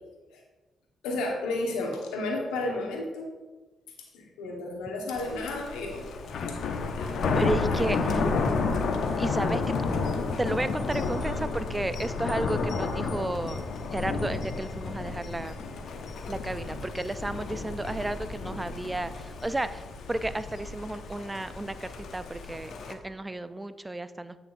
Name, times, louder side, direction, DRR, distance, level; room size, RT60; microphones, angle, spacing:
voice 1, 1.0-3.3 4.1-6.1 6.5-6.6 6.9-7.2 7.7-8.4, left 2 dB, 85° left, 0 dB, 1.2 m, -33 dB
Thunder, 5.2-22.9, left 4 dB, 65° left, 0.6 m, -31 dB
voice 2, 7.4-8.3 9.2-9.6 10.4-13.6 13.9-15.6 16.3-24.4, right 2 dB, 20° right, 13 dB, 0.4 m, -32 dB
9.0 x 5.7 x 2.6 m, 1.2 s
hypercardioid pair, 50°, 0 cm